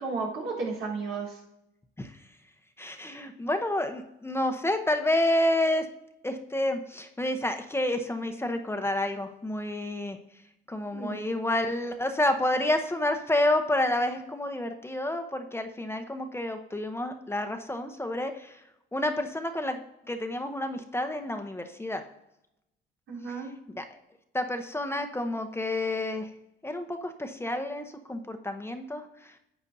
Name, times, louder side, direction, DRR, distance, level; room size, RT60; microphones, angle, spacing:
voice 1, 0.0-1.4 10.9-11.2 23.1-23.5, right 4 dB, 85° right, -6 dB, 3.8 m, -33 dB
voice 2, 2.8-5.8 6.2-10.2 10.7-18.6 18.9-19.8 20.1-22.0 23.8-23.9 24.3-26.3 26.6-29.4, left 1 dB, 10° left, 6 dB, 0.8 m, -29 dB
11.5 x 7.9 x 2.7 m, 0.84 s
cardioid pair, 90°, 20 cm